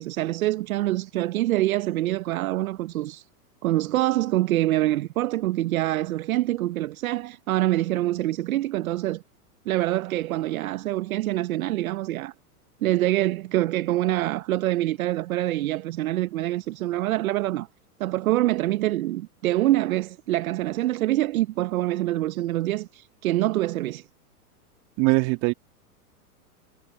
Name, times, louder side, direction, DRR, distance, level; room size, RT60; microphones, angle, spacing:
voice 1, 0.0-3.3 3.6-9.2 9.7-12.3 12.8-17.7 18.0-24.0, right 16 dB, 60° right, 1.0 m, -25 dB
voice 2, 25.0-25.5, right 28 dB, 40° right, 1.8 m, -21 dB
hypercardioid pair, 115°, 46 cm